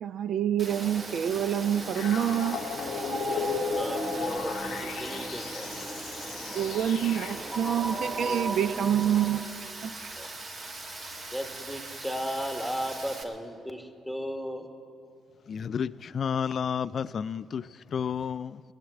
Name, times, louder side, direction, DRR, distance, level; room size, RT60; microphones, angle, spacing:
voice 1, 0.0-2.6 6.5-9.5 9.8-9.9, right 9 dB, 70° right, 14 dB, 0.6 m, -27 dB
Rain, 0.6-13.2, right 2 dB, 45° right, 1.8 m, -41 dB
sound 1, 0.7-9.4, right 1 dB, 25° right, 1.2 m, -36 dB
sound 2, 2.0-7.7, left 8 dB, 80° left, 0.7 m, -36 dB
voice 2, 3.2-6.0 6.5-6.7 10.2-10.3 11.3-14.7, equal, 5° right, 4 dB, 1.6 m, -36 dB
voice 3, 15.5-18.6, left 7 dB, 50° left, 16 dB, 0.3 m, -31 dB
18.5 x 7.5 x 9.8 m, 2.4 s
cardioid pair, 90°, 0 cm